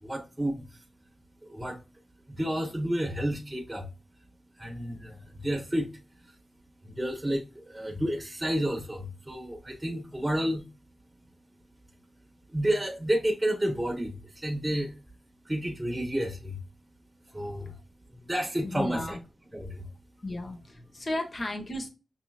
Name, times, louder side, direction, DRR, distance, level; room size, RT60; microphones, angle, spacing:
voice 1, 0.0-0.8 1.4-1.8 2.3-3.9 4.6-5.9 6.2-6.3 6.8-10.6 12.5-15.0 15.4-16.6 17.3-17.7 18.1-19.2 19.5-19.9, right 1 dB, 15° right, 1.1 m, -31 dB
voice 2, 17.4-17.8 18.6-19.2 20.2-21.9, left 1 dB, 45° left, 1.2 m, -35 dB
6.1 x 2.9 x 2.4 m
cardioid pair, 55°, 0 cm